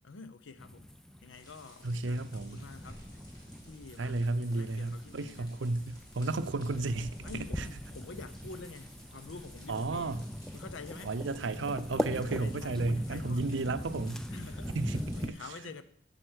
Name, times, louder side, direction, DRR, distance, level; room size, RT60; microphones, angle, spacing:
voice 1, 0.0-0.9 1.2-3.2 3.7-4.2 4.5-5.6 7.2-10.1 10.5-11.1 12.2-13.5 14.3-14.7 15.1-15.8, left 4 dB, 75° left, 0.7 m, -47 dB
sound 1, 0.6-15.3, equal, 5° left, 0.4 m, -42 dB
sound 2, 1.3-15.3, equal, 20° left, 2.4 m, -53 dB
voice 2, 1.8-2.6 4.0-7.7 9.7-10.2 11.0-14.3 14.7-15.5, right 2 dB, 70° right, 0.6 m, -33 dB
7.9 x 7.0 x 6.3 m
head